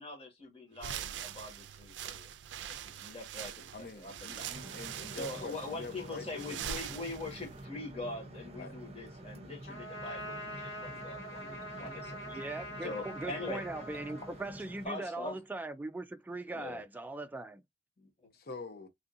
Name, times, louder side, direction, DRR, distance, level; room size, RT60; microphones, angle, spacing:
voice 1, 0.0-2.3 2.7-4.6 5.1-12.2 12.8-13.6 14.8-15.3 16.5-16.8 18.0-18.1, left 2 dB, 35° left, 1.5 m, -43 dB
sound 1, 0.8-7.6, right 9 dB, 90° right, 0.4 m, -43 dB
voice 2, 3.7-6.8 8.6-8.7 18.3-18.9, left 3 dB, 60° left, 0.7 m, -45 dB
sound 2, 4.5-14.9, right 1 dB, 35° right, 0.8 m, -48 dB
Trumpet, 9.7-14.9, equal, 85° left, 1.9 m, -44 dB
voice 3, 12.3-17.6, right 2 dB, 10° right, 0.3 m, -40 dB
3.4 x 2.6 x 2.6 m
head